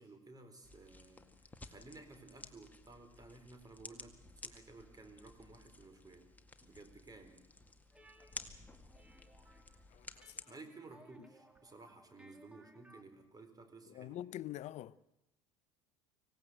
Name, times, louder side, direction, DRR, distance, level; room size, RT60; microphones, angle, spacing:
voice 1, 0.0-6.3 6.6-7.4 10.5-14.2, right 3 dB, 20° right, 4.2 m, -55 dB
sound 1, 0.6-10.4, left 2 dB, 10° left, 2.0 m, -54 dB
sound 2, 7.9-13.0, right 1 dB, 5° right, 2.5 m, -64 dB
voice 2, 9.9-10.5 13.9-15.0, left 13 dB, 40° left, 0.7 m, -45 dB
25.0 x 17.5 x 8.0 m
figure-of-eight pair, 70°, 17 cm